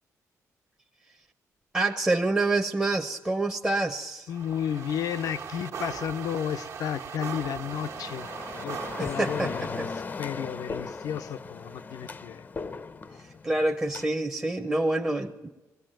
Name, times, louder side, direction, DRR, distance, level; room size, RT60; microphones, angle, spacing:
voice 1, 1.7-4.3 9.0-9.5 9.8-9.9 13.4-15.5, right 2 dB, 10° right, 4 dB, 0.8 m, -27 dB
voice 2, 4.3-8.3 8.6-9.9 10.2-12.5, left 9 dB, 80° left, 10 dB, 0.8 m, -33 dB
sound 1, 4.3-10.0, right 7 dB, 60° right, 1.4 m, -39 dB
sound 2, 7.6-14.1, left 4 dB, 30° left, 0.7 m, -38 dB
20.5 x 16.0 x 9.1 m, 1.1 s
cardioid pair, 130°, 6 cm